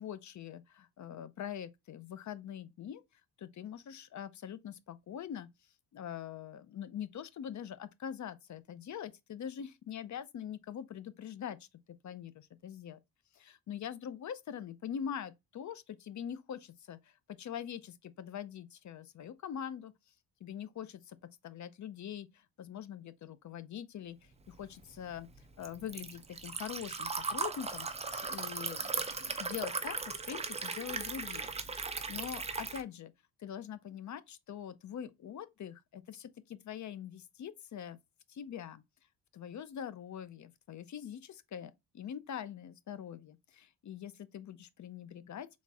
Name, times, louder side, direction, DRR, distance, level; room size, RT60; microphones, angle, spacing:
voice 1, 0.0-3.0 3.4-5.5 5.9-11.7 12.0-13.0 13.3-19.9 20.4-21.2 21.4-25.3 25.6-27.9 28.1-33.1 33.4-38.0 38.3-38.8 39.3-45.5, left 9 dB, 40° left, 0.5 m, -43 dB
Liquid, 24.5-32.8, right 4 dB, 15° right, 0.4 m, -38 dB
4.2 x 3.6 x 3.4 m
cardioid pair, 135°, 45 cm